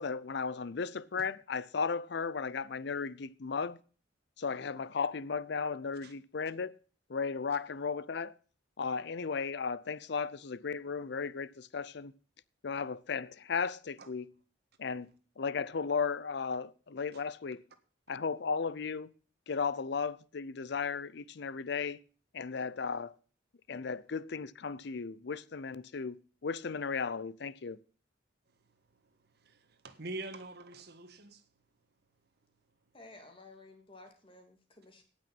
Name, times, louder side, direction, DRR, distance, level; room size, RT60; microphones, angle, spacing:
voice 1, 0.0-3.8 4.4-6.8 7.1-8.3 8.8-12.1 12.6-14.3 14.8-15.1 15.4-17.6 18.1-19.1 19.5-22.0 22.3-23.1 23.7-27.8, left 5 dB, 60° left, 0.6 m, -35 dB
voice 2, 29.4-31.4, right 2 dB, 60° right, 1.6 m, -44 dB
voice 3, 32.9-35.0, left 2 dB, 30° left, 2.6 m, -54 dB
17.0 x 6.3 x 6.0 m
head